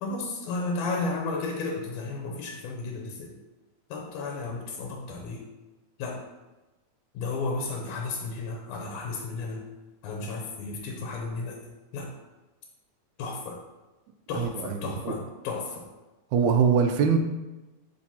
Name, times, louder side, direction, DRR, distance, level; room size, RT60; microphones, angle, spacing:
voice 1, 0.0-3.3 3.9-5.4 6.0-6.2 7.1-9.6 10.0-11.6 11.9-12.1 13.2-13.6 14.3-15.9, left 3 dB, 90° left, 1 dB, 2.2 m, -33 dB
voice 2, 14.3-15.2 16.3-17.2, right 6 dB, 85° right, 5 dB, 2.1 m, -23 dB
11.5 x 4.4 x 2.8 m, 1.1 s
omnidirectional pair, 3.5 m